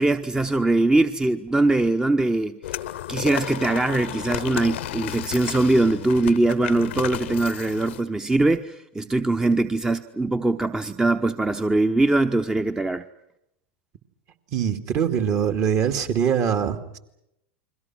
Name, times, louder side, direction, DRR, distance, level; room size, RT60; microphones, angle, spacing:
voice 1, 0.0-2.6 3.1-13.0, right 2 dB, 10° right, 0.9 m, -22 dB
sound 1, 2.6-8.0, left 13 dB, 75° left, 1.0 m, -33 dB
voice 2, 14.5-17.0, right 8 dB, 45° right, 2.4 m, -23 dB
30.0 x 22.5 x 6.2 m
hypercardioid pair, 90°, 6 cm